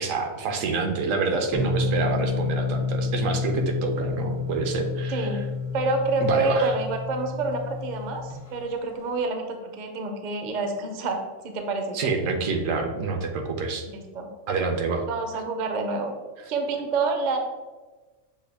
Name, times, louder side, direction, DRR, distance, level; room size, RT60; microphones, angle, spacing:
voice 1, 0.0-5.3 6.2-6.8 11.9-13.9 14.5-15.0, right 4 dB, 80° right, 4 dB, 1.0 m, -27 dB
sound 1, 1.5-8.4, left 4 dB, 25° left, 0.4 m, -29 dB
voice 2, 5.1-5.4 5.7-12.1 13.9-14.3 15.1-16.1 16.5-17.4, right 3 dB, 55° right, 5 dB, 0.5 m, -28 dB
6.4 x 2.2 x 3.4 m, 1.3 s
omnidirectional pair, 1.4 m